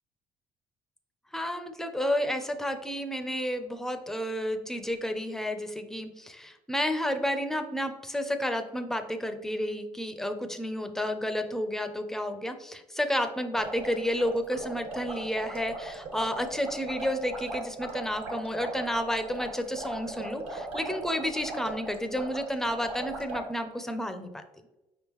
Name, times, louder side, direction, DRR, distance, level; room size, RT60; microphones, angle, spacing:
voice 1, 1.3-24.4, equal, 5° left, 7 dB, 0.4 m, -31 dB
sound 1, 13.5-23.5, right 2 dB, 75° right, 1.5 m, -39 dB
5.0 x 3.6 x 2.9 m, 1.0 s
cardioid pair, 120°, 10 cm